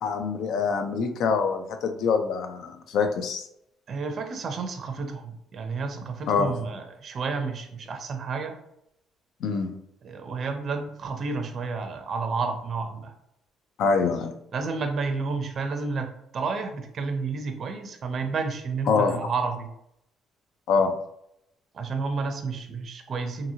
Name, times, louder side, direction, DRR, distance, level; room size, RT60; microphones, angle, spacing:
voice 1, 0.0-3.4 6.3-6.5 9.4-9.7 13.8-14.3 18.9-19.2 20.7-20.9, left 5 dB, 70° left, 5 dB, 0.4 m, -25 dB
voice 2, 3.9-8.6 10.0-13.1 14.5-16.1 16.3-19.7 21.7-23.5, right 4 dB, 45° right, 5 dB, 0.5 m, -31 dB
2.8 x 2.6 x 2.7 m, 0.76 s
cardioid pair, 135°, 0 cm